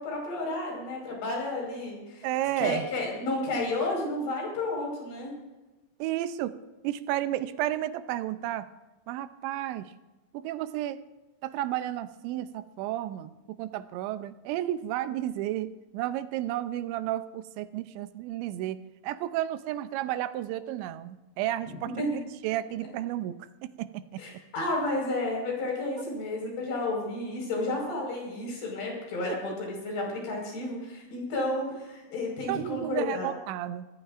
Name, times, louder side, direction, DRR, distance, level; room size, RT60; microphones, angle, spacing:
voice 1, 0.0-2.3 2.6-5.3 22.0-22.1 24.2-33.3, left 2 dB, 70° left, -1 dB, 7.1 m, -32 dB
voice 2, 2.2-2.8 6.0-6.5 6.8-8.7 9.1-9.9 10.3-11.0 11.4-18.8 19.0-21.9 22.4-23.5 23.8-24.2 29.3-29.4 32.5-33.9, right 13 dB, 85° right, 12 dB, 2.9 m, -32 dB
24.5 x 15.0 x 2.5 m, 1.1 s
omnidirectional pair, 5.2 m